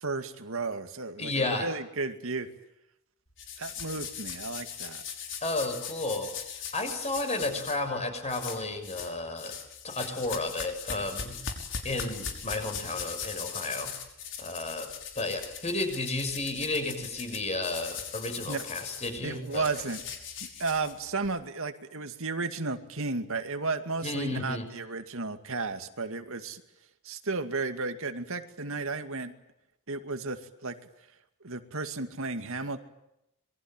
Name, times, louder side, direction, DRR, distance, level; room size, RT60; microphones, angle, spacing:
voice 1, 0.0-2.5 3.6-5.0 18.5-18.6 19.2-20.0 20.4-26.6 27.0-29.3 29.9-30.8 31.4-32.8, right 3 dB, 70° right, 7 dB, 2.4 m, -33 dB
voice 2, 1.2-1.7 5.4-6.3 6.7-9.6 9.8-11.3 11.8-13.9 14.4-19.6 24.0-24.7, left 2 dB, 30° left, 6 dB, 6.6 m, -32 dB
sound 1, 3.4-7.8 8.3-9.1 9.4-21.3, left 7 dB, 60° left, 5.6 m, -40 dB
27.0 x 23.5 x 9.1 m, 0.83 s
head